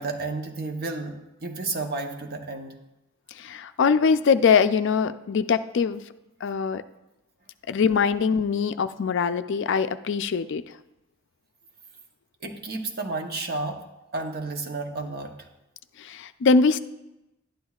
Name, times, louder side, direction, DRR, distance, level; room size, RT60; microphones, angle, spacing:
voice 1, 0.0-2.8 3.5-3.6 12.4-13.8 14.1-15.5, right 3 dB, 45° right, 4 dB, 0.8 m, -32 dB
voice 2, 3.3-6.0 6.4-6.8 7.7-10.6 16.0-16.8, left 5 dB, 55° left, 11 dB, 0.4 m, -22 dB
11.5 x 10.0 x 2.4 m, 0.95 s
head